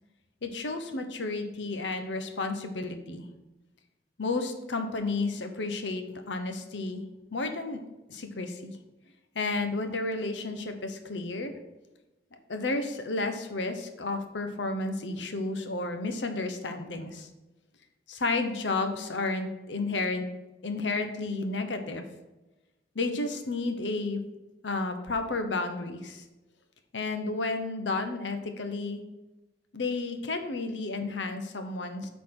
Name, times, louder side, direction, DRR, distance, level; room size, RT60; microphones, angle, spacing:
voice 1, 0.4-3.3 4.2-7.0 7.3-7.8 8.1-8.8 9.3-11.5 12.5-17.3 18.1-20.3 20.6-22.0 22.9-24.2 24.6-26.2 26.9-29.0 29.7-32.1, left 3 dB, 80° left, 7 dB, 1.0 m, -32 dB
8.7 x 4.1 x 6.1 m, 1.0 s
head